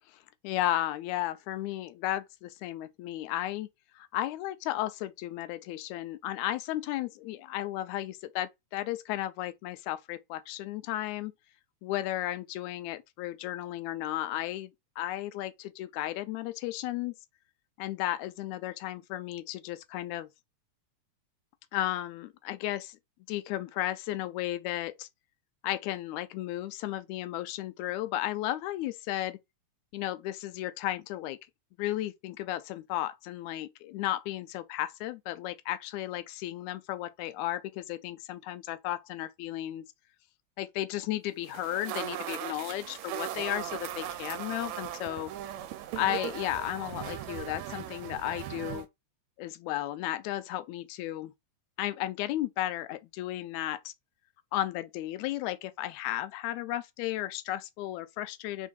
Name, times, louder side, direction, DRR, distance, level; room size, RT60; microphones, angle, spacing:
voice 1, 0.4-3.7 4.0-11.3 11.8-14.7 15.0-17.2 17.8-20.3 21.7-23.0 23.3-25.1 25.6-29.4 29.9-31.4 31.8-39.9 40.6-45.3 46.0-48.9 49.4-51.3 51.8-53.9 54.5-58.7, left 14 dB, 80° left, 1.9 m, -34 dB
sound 1, 41.4-48.8, right 11 dB, 80° right, 1.7 m, -38 dB
5.1 x 3.6 x 2.3 m
omnidirectional pair, 3.4 m